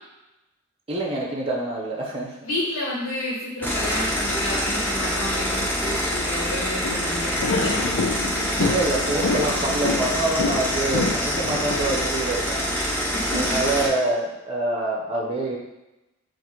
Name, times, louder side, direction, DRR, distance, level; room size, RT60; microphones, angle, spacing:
voice 1, 0.9-2.3 8.6-12.7 13.3-15.6, right 2 dB, 30° right, -2 dB, 0.6 m, -26 dB
voice 2, 2.4-7.8 13.1-13.4, left 1 dB, 85° left, -7 dB, 1.4 m, -30 dB
sound 1, 3.6-13.9, equal, 10° left, 0.7 m, -26 dB
sound 2, 6.8-12.0, left 3 dB, 70° left, 0.5 m, -28 dB
3.7 x 2.5 x 4.3 m, 0.95 s
head